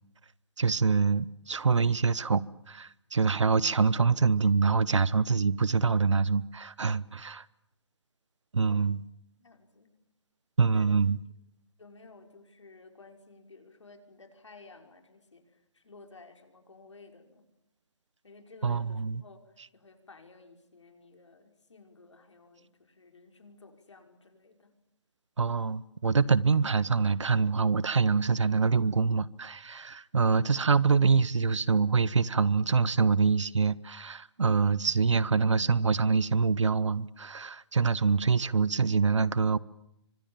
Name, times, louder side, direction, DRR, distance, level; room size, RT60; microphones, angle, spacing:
voice 1, 0.6-7.4 8.5-9.0 10.6-11.2 18.6-19.2 25.4-39.6, right 5 dB, 90° right, 1.1 m, -25 dB
voice 2, 9.4-10.0 10.7-10.9 11.8-17.5 18.2-24.7, left 3 dB, 85° left, 5.8 m, -54 dB
29.0 x 25.0 x 7.4 m
hypercardioid pair, 175°, 15 cm